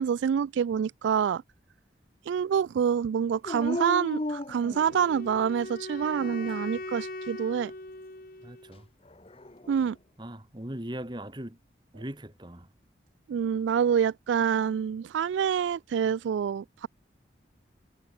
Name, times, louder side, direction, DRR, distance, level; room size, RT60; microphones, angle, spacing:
voice 1, 0.0-1.4 2.3-7.7 9.7-10.0 13.3-16.9, right 7 dB, 80° right, 0.3 m, -27 dB
Dog, 3.4-5.4 6.0-6.8 9.1-9.9, left 1 dB, 30° left, 0.9 m, -36 dB
Wind instrument woodwind instrument, 4.7-8.8, left 2 dB, 50° left, 2.1 m, -40 dB
voice 2, 8.4-8.9 10.2-11.6 11.9-12.7, right 1 dB, 25° right, 2.0 m, -39 dB
head